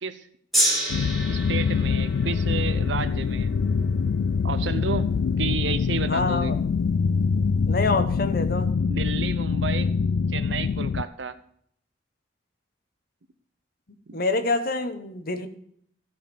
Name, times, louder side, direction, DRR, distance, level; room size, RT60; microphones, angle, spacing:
Gong, 0.5-6.9 7.7-7.8, right 1 dB, ahead, 3.2 m, -31 dB
sound 1, 0.9-11.0, left 5 dB, 80° left, 0.3 m, -24 dB
voice 1, 1.3-3.5 4.4-6.5 8.9-9.9 10.3-11.4 14.1-14.2, right 5 dB, 85° right, 12 dB, 0.8 m, -32 dB
voice 2, 6.1-6.5 7.6-8.7 14.1-15.5, left 3 dB, 55° left, 9 dB, 1.0 m, -26 dB
14.0 x 5.3 x 6.8 m, 0.66 s
head